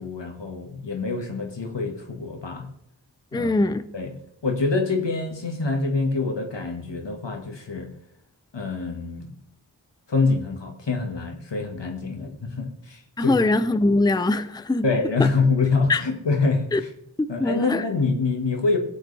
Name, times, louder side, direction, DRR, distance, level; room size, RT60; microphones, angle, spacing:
voice 1, 0.0-2.7 3.3-3.5 3.9-4.1 4.4-7.9 8.5-9.3 10.1-13.4 14.8-16.9 17.3-18.8, left 4 dB, 80° left, 1.8 m, -25 dB
voice 2, 3.3-3.9 13.2-14.8 15.9-16.0 16.7-16.8 17.2-17.8, left 2 dB, 10° left, 0.5 m, -22 dB
16.5 x 8.1 x 3.4 m
wide cardioid pair, 45°, 42 cm